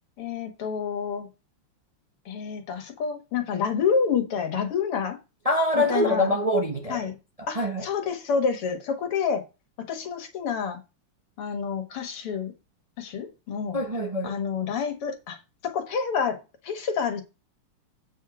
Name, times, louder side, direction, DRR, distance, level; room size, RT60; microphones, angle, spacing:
voice 1, 0.2-1.3 2.3-5.2 5.8-6.3 6.9-7.2 7.5-9.5 9.8-10.8 11.4-12.5 13.0-13.8 14.2-15.4 15.6-17.2, left 6 dB, 85° left, 2.6 m, -28 dB
voice 2, 5.4-7.1 7.5-7.8 13.7-14.3, left 1 dB, 25° right, 0.9 m, -24 dB
8.4 x 5.5 x 5.0 m
omnidirectional pair, 2.4 m